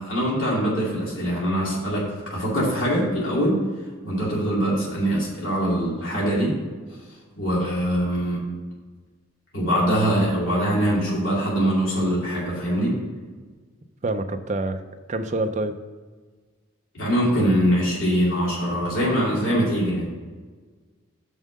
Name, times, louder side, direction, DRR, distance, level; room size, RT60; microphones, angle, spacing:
voice 1, 0.0-2.0 2.3-3.6 4.0-6.5 7.4-8.4 9.5-13.0 16.9-20.1, equal, 70° left, -5 dB, 2.4 m, -23 dB
voice 2, 14.0-14.8 15.1-15.8, right 2 dB, 35° right, 8 dB, 0.5 m, -26 dB
6.3 x 5.5 x 6.4 m, 1.4 s
head